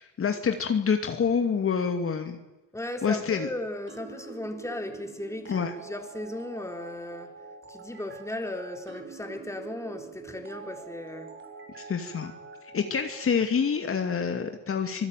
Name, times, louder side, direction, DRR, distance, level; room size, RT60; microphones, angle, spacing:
voice 1, 0.0-2.4 3.0-3.5 5.5-5.7 11.8-12.3 12.7-15.1, left 6 dB, 45° left, 2.5 m, -27 dB
voice 2, 2.7-7.3 7.7-11.3, left 1 dB, 10° left, 4.0 m, -36 dB
sound 1, 3.9-13.3, right 5 dB, 40° right, 4.4 m, -45 dB
26.0 x 19.0 x 9.2 m
cardioid pair, 90°, 30 cm